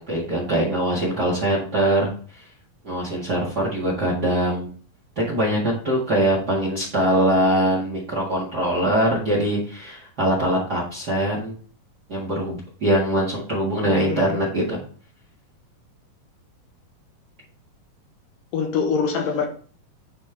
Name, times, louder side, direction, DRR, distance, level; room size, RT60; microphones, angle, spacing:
voice 1, 0.0-2.4 2.8-4.7 5.1-11.5 12.1-14.8, right 1 dB, 35° right, 1.7 m, -22 dB
voice 2, 13.8-14.4 18.5-19.5, left 5 dB, 70° left, 2.7 m, -24 dB
9.1 x 4.3 x 3.4 m
omnidirectional pair, 4.1 m